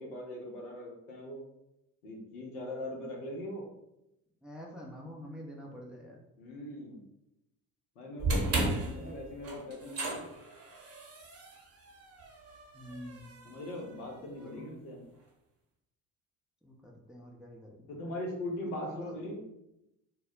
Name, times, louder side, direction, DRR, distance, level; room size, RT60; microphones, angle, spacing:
voice 1, 0.0-1.4 2.0-3.7 6.4-7.0 8.0-10.3 13.4-15.0 17.9-19.4, left 1 dB, 80° left, 0 dB, 0.7 m, -40 dB
voice 2, 4.4-6.2 8.9-9.1 12.7-13.4 14.4-14.7 16.6-17.9 18.6-19.2, left 1 dB, ahead, -2 dB, 0.5 m, -46 dB
sound 1, 8.2-14.5, right 2 dB, 35° right, 0.8 m, -36 dB
2.1 x 2.0 x 3.7 m, 0.85 s
figure-of-eight pair, 50°, 43 cm